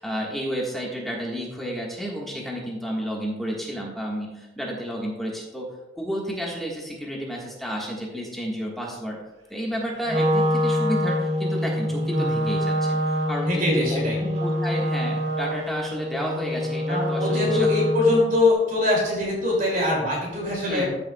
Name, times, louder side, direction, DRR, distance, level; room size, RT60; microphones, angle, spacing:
voice 1, 0.0-5.7 6.0-9.2 9.5-13.6 13.9-17.7 20.6-20.9, equal, ahead, -3 dB, 1.5 m, -31 dB
Wind instrument woodwind instrument, 10.0-18.3, equal, 65° right, 1.9 m, -25 dB
voice 2, 12.1-12.5 13.5-14.2 16.9-20.9, left 2 dB, 50° right, -3 dB, 2.7 m, -23 dB
14.0 x 6.9 x 2.3 m, 1.0 s
head